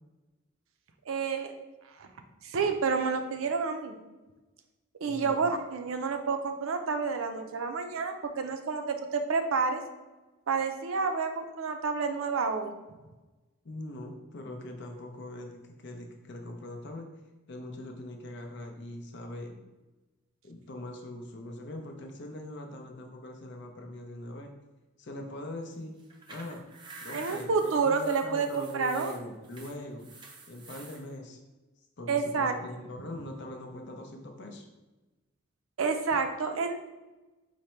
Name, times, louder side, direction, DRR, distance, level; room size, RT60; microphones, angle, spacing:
voice 1, 1.1-1.5 2.0-2.1 2.4-4.0 5.0-9.8 10.5-12.7 27.1-29.1 32.1-32.5 35.8-36.9, right 5 dB, 75° right, 6 dB, 0.5 m, -29 dB
voice 2, 5.1-5.5 13.6-17.1 17.5-19.6 20.4-24.5 25.0-25.9 26.3-26.6 27.0-30.1 30.5-31.4 32.0-34.7, left 1 dB, 55° left, 4 dB, 0.6 m, -42 dB
sound 1, 26.0-31.0, right 3 dB, 20° right, 0.4 m, -49 dB
5.0 x 2.1 x 4.3 m, 1.1 s
head